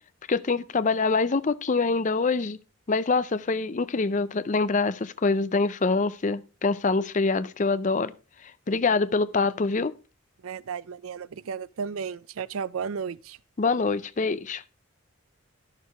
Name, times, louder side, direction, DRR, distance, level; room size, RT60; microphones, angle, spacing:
voice 1, 0.3-2.6 2.9-8.1 8.7-9.9 13.6-14.6, left 4 dB, 35° left, 0.5 m, -25 dB
voice 2, 10.4-13.4, right 6 dB, 85° right, 0.5 m, -34 dB
11.0 x 6.6 x 4.8 m
head